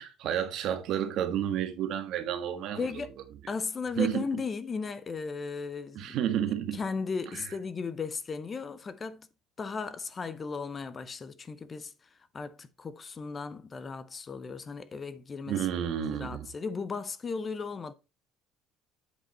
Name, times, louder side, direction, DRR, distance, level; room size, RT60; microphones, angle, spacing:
voice 1, 0.0-2.9 4.0-4.4 5.9-6.8 7.3-7.5 15.5-16.5, right 10 dB, 60° right, 1.4 m, -31 dB
voice 2, 2.7-3.1 3.5-6.2 6.7-9.3 9.6-11.9 12.3-15.7 16.1-17.9, left 4 dB, 25° left, 0.6 m, -36 dB
8.3 x 5.1 x 4.2 m
cardioid pair, 145°, 0 cm